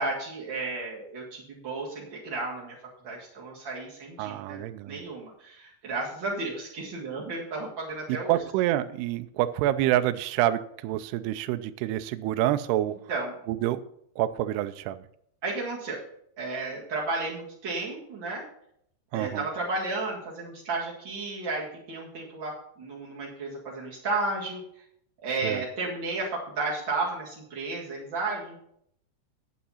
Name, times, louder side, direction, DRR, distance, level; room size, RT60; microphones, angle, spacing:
voice 1, 0.0-2.7 3.0-4.6 4.9-8.4 13.1-13.3 15.4-16.0 16.4-18.4 19.1-24.8 25.2-28.6, right 3 dB, 60° right, -5 dB, 1.2 m, -33 dB
voice 2, 4.2-5.0 8.3-13.0 13.5-13.8 14.2-15.0 19.1-19.5 25.4-25.6, right 13 dB, 90° right, 11 dB, 2.3 m, -27 dB
9.2 x 8.7 x 5.6 m, 0.71 s
omnidirectional pair, 5.3 m